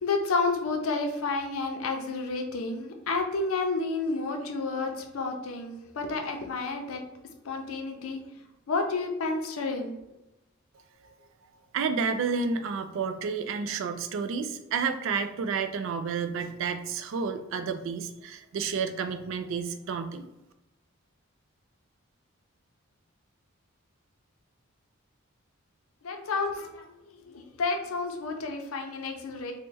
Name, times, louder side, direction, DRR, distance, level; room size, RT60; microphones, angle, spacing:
voice 1, 0.0-7.0 7.4-8.4 8.7-9.9 26.0-26.9 27.3-29.5, left 3 dB, 80° left, 4 dB, 0.5 m, -30 dB
voice 2, 11.7-20.3, right 5 dB, 65° right, 9 dB, 0.3 m, -30 dB
3.1 x 2.1 x 3.3 m, 0.92 s
head